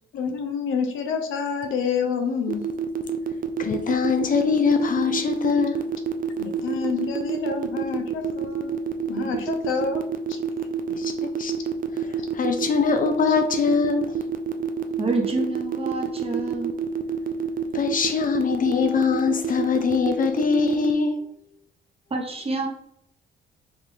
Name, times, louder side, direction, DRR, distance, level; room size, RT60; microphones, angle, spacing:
voice 1, 0.1-2.6 6.4-8.8 9.1-10.0 10.3-10.4 13.3-13.4, left 5 dB, 85° left, 0.7 m, -28 dB
sound 1, 2.5-20.9, right 8 dB, 45° right, 0.5 m, -27 dB
voice 2, 3.6-5.9 10.9-11.5 12.0-14.2 17.7-21.3, left 6 dB, 45° left, 0.5 m, -23 dB
voice 3, 15.0-16.7 22.1-22.7, right 3 dB, 30° right, 1.1 m, -27 dB
5.0 x 2.5 x 3.5 m
cardioid pair, 90°, 20 cm